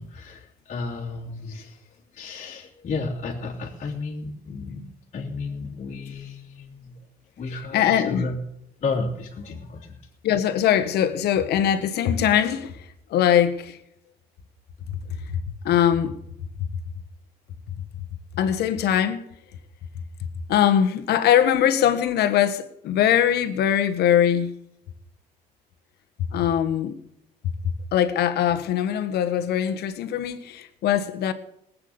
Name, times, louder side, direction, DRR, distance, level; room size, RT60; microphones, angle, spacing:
voice 1, 0.0-7.0 7.4-8.4 8.8-10.0, left 3 dB, 45° left, 3.0 m, -33 dB
voice 2, 7.7-8.3 10.2-12.8 13.1-13.8 14.9-15.0 15.3-16.2 18.3-19.2 20.5-24.5 26.3-27.0 27.9-31.3, left 10 dB, 75° left, 1.6 m, -21 dB
19.0 x 8.9 x 7.1 m
cardioid pair, 110°, 17 cm